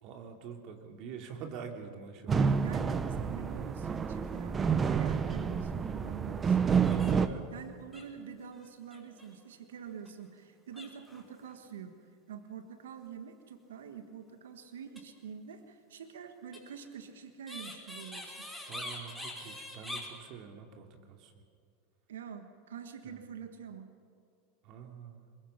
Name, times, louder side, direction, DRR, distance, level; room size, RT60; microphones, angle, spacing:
voice 1, 0.0-2.6 7.1-7.5 18.7-21.4 23.0-23.2 24.6-25.3, right 6 dB, 55° right, 4 dB, 2.9 m, -46 dB
sound 1, 2.3-7.3, right 6 dB, 25° right, 0.9 m, -29 dB
voice 2, 2.4-7.0 7.5-18.4 22.1-23.9, right 7 dB, 85° right, 8 dB, 1.4 m, -46 dB
sound 2, 6.7-7.4 7.6-7.7 7.9-9.3 9.9-10.1 10.7-11.6 14.8-15.0 16.5-20.1, left 1 dB, ahead, 5.7 m, -44 dB
22.5 x 21.0 x 5.8 m, 2.4 s
hypercardioid pair, 105°, 0 cm